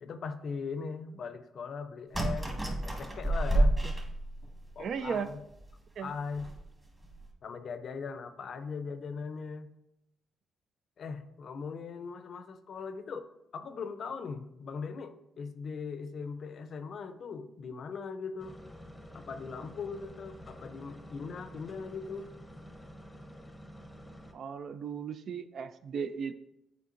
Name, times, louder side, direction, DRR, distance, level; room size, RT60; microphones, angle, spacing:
voice 1, 0.0-2.5 2.8-3.8 4.8-5.4 6.0-6.5 7.4-9.7 11.0-18.6 19.1-22.3, left 5 dB, 55° left, 10 dB, 0.5 m, -40 dB
sound 1, 2.1-4.7 5.3-5.4 5.6-5.7 6.3-6.6 7.0-7.2, right 1 dB, 20° right, 1.5 m, -29 dB
voice 2, 4.8-5.3 6.0-6.1 24.3-26.3, right 6 dB, 60° right, 11 dB, 0.4 m, -36 dB
sound 2, 18.4-24.3, equal, 10° left, 0.8 m, -49 dB
8.2 x 4.6 x 2.5 m, 0.83 s
cardioid pair, 90°, 0 cm